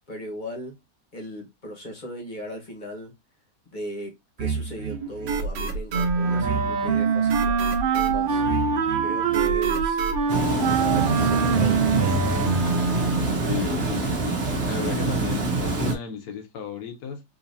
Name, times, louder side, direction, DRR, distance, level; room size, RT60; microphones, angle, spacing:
voice 1, 0.1-0.8 1.1-3.1 3.7-8.4 9.0-10.0 10.6-12.3, left 1 dB, 30° left, 1.2 m, -37 dB
sound 1, 4.4-12.7, right 5 dB, 85° right, 1.3 m, -29 dB
Wind instrument woodwind instrument, 5.9-13.4, right 5 dB, 60° right, 0.5 m, -24 dB
Water, 10.3-15.9, right 3 dB, 45° right, 1.1 m, -26 dB
voice 2, 13.5-17.2, left 8 dB, 65° left, 1.3 m, -34 dB
3.9 x 2.8 x 2.6 m
omnidirectional pair, 1.8 m